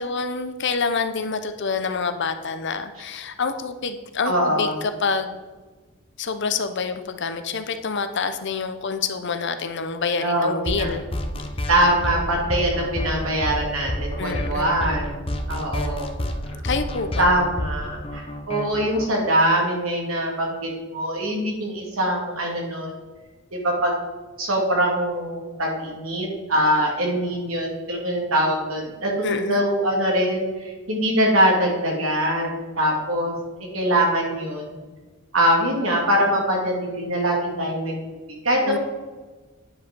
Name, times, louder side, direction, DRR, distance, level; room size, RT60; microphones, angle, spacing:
voice 1, 0.0-5.4 6.2-11.1 14.2-15.0 16.6-17.3 29.2-29.6 38.6-38.8, left 4 dB, 60° left, 9 dB, 0.8 m, -27 dB
voice 2, 4.2-4.8 10.2-10.9 11.7-16.1 17.2-23.0 23.5-23.9 24.4-33.3 33.7-34.8 35.3-37.9 38.4-38.8, right 1 dB, 85° right, -1 dB, 2.7 m, -23 dB
sound 1, 10.7-19.0, left 1 dB, 25° left, 0.8 m, -29 dB
9.5 x 5.7 x 5.3 m, 1.3 s
head